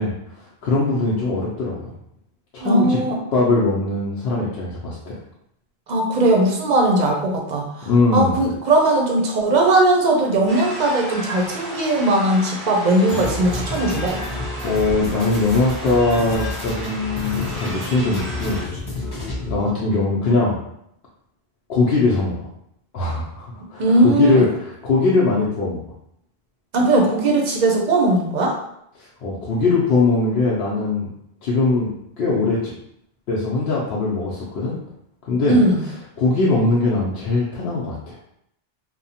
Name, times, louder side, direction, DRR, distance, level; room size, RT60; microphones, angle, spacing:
voice 1, 0.0-1.9 2.5-3.0 3.3-5.2 7.9-8.4 14.6-18.6 19.4-20.6 21.7-22.5 22.9-25.8 29.0-31.1 31.4-31.9 32.2-32.7 33.3-34.8 35.2-35.6 36.2-38.2, left 3 dB, 80° left, -5 dB, 0.8 m, -21 dB
voice 2, 2.6-3.2 5.9-14.2 23.8-24.4 26.7-28.5 35.5-35.8, right 2 dB, 55° right, 0 dB, 0.6 m, -19 dB
sound 1, 10.5-18.6, equal, ahead, 1.0 m, -34 dB
sound 2, 13.1-19.7, left 2 dB, 30° left, 0.5 m, -30 dB
2.9 x 2.1 x 2.7 m, 0.76 s
omnidirectional pair, 1.0 m